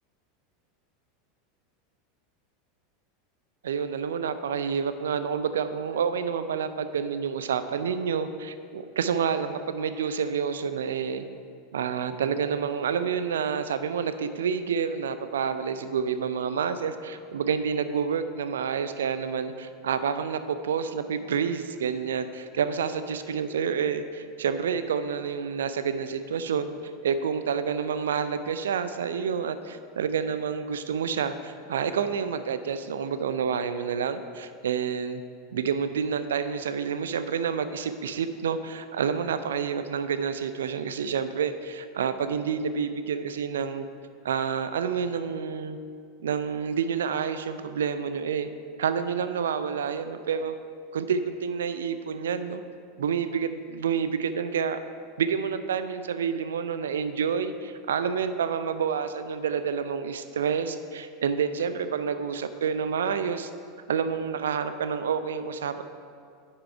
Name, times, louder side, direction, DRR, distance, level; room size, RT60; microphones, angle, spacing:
voice 1, 3.6-11.2 11.7-26.7 27.0-35.2 35.5-43.9 44.2-45.8 46.2-48.5 48.8-50.5 50.9-52.6 53.0-54.8 55.2-63.5 63.9-65.8, right 7 dB, 70° right, 11 dB, 0.4 m, -28 dB
10.0 x 5.8 x 4.6 m, 2.3 s
figure-of-eight pair, 80°, 0 cm